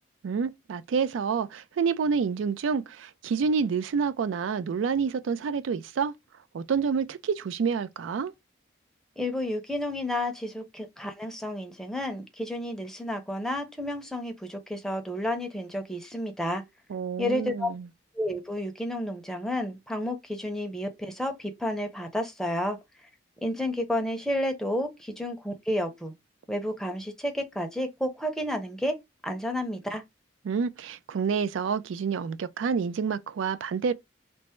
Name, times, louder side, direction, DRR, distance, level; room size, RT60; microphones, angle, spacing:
voice 1, 0.2-6.1 6.5-8.3 16.9-17.9 30.4-33.9, right 6 dB, 90° right, 0.3 m, -28 dB
voice 2, 9.2-16.6 17.2-17.7 18.2-22.8 23.4-26.1 26.5-29.0 29.2-30.0, left 1 dB, 5° left, 0.5 m, -31 dB
3.3 x 2.0 x 4.2 m
head